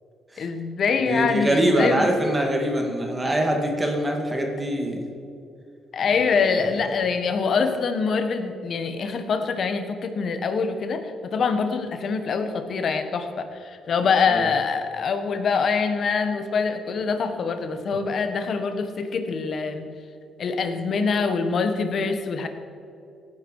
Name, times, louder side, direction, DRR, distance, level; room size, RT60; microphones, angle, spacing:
voice 1, 0.4-2.1 5.9-19.9 20.4-22.5, left 5 dB, 55° left, 8 dB, 1.4 m, -24 dB
voice 2, 1.1-5.0 6.1-6.6 14.3-14.4, right 1 dB, 20° right, 2 dB, 2.2 m, -24 dB
16.5 x 10.0 x 4.8 m, 2.6 s
cardioid pair, 90°, 0 cm